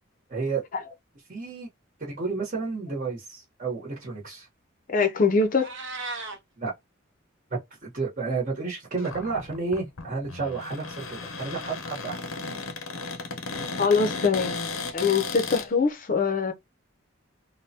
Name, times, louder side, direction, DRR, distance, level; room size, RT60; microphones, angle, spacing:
voice 1, 0.3-0.6 1.3-1.7 2.0-4.5 6.6-6.7 7.5-12.2, right 4 dB, 40° right, 1.0 m, -31 dB
voice 2, 4.9-5.7 13.8-14.5 14.9-16.5, left 4 dB, 40° left, 0.6 m, -23 dB
Meow, 5.4-6.4, right 3 dB, 60° right, 0.7 m, -36 dB
Cupboard open or close, 9.0-15.7, left 4 dB, 80° left, 0.7 m, -35 dB
3.3 x 2.2 x 2.7 m
head